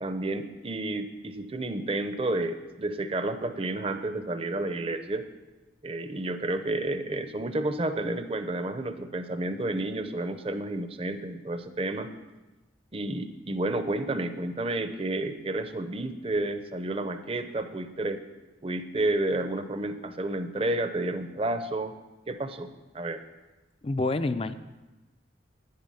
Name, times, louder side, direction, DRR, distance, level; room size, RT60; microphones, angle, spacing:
voice 1, 0.0-5.2 5.8-12.1 12.9-18.2 18.6-21.9 22.3-22.7 22.9-23.2, right 2 dB, 30° right, 9 dB, 0.6 m, -31 dB
voice 2, 23.8-24.5, left 2 dB, 30° left, 12 dB, 0.4 m, -27 dB
10.5 x 10.5 x 5.5 m, 1.1 s
head